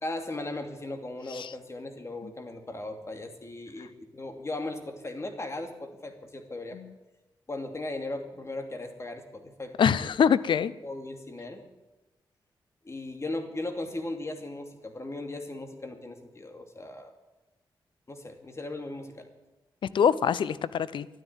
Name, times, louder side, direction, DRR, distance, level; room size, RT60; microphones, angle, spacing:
voice 1, 0.0-6.8 7.5-10.1 10.8-11.7 12.8-17.1 18.1-19.3, left 2 dB, 35° left, 5 dB, 2.6 m, -37 dB
voice 2, 9.8-10.7 19.9-21.1, left 7 dB, 70° left, 18 dB, 0.6 m, -24 dB
12.0 x 10.0 x 9.0 m, 1.1 s
cardioid pair, 55°, 9 cm